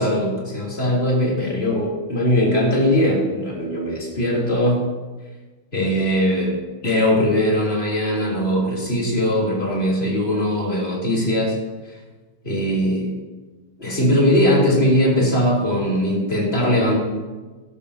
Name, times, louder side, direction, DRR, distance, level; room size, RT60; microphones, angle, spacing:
voice 1, 0.0-4.8 5.7-6.5 6.8-11.6 12.4-13.1 13.8-17.0, equal, 30° left, -4 dB, 3.6 m, -20 dB
18.5 x 12.0 x 2.9 m, 1.3 s
omnidirectional pair, 2.0 m